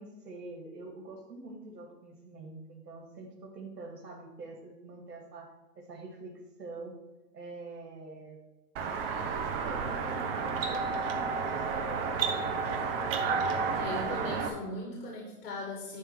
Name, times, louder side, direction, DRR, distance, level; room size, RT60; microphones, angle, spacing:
voice 1, 0.0-5.5 5.8-7.0 7.3-8.4 9.3-12.8, right 2 dB, 90° right, -1 dB, 2.1 m, -45 dB
sound 1, 8.8-14.5, right 5 dB, 35° right, 1.1 m, -31 dB
voice 2, 13.7-16.0, left 2 dB, 75° left, -2 dB, 2.4 m, -38 dB
11.0 x 3.8 x 6.0 m, 1.0 s
hypercardioid pair, 150°, 48 cm